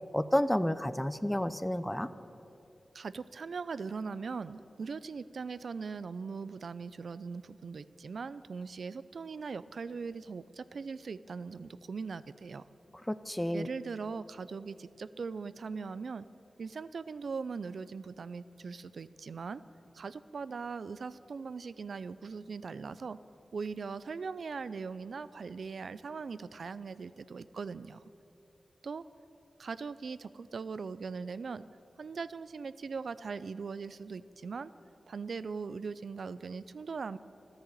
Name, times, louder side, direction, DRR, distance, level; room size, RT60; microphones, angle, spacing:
voice 1, 0.1-2.1 13.1-13.7, left 1 dB, 10° left, 14 dB, 0.6 m, -30 dB
voice 2, 2.9-12.6 13.5-16.3 16.6-19.6 19.9-23.2 23.5-28.0 28.8-29.0 29.6-31.7 32.0-34.7 35.1-37.2, right 5 dB, 80° right, 16 dB, 0.4 m, -40 dB
13.5 x 10.5 x 9.0 m, 2.9 s
cardioid pair, 55°, 0 cm